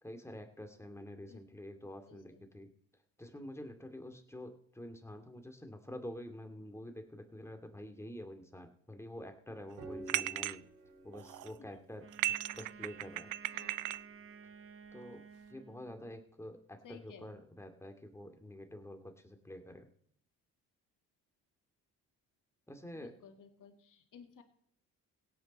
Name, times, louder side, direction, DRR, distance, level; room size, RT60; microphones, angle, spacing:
voice 1, 0.0-2.7 3.2-10.7 11.0-12.1 12.5-13.3 14.9-15.2 15.5-19.8 22.7-23.1, left 1 dB, 5° left, 5 dB, 2.3 m, -48 dB
voice 2, 2.1-2.4 13.5-13.7 16.8-17.4 23.0-24.4, left 6 dB, 55° left, 5 dB, 2.2 m, -56 dB
sound 1, 9.5-14.5, right 2 dB, 80° right, 3.4 m, -52 dB
sound 2, 10.1-10.6 11.1-11.6 12.1-14.0, right 15 dB, 55° right, 0.5 m, -36 dB
Wind instrument woodwind instrument, 12.0-16.2, right 6 dB, 35° right, 1.0 m, -53 dB
16.5 x 8.9 x 4.2 m, 0.64 s
supercardioid pair, 65°, 37 cm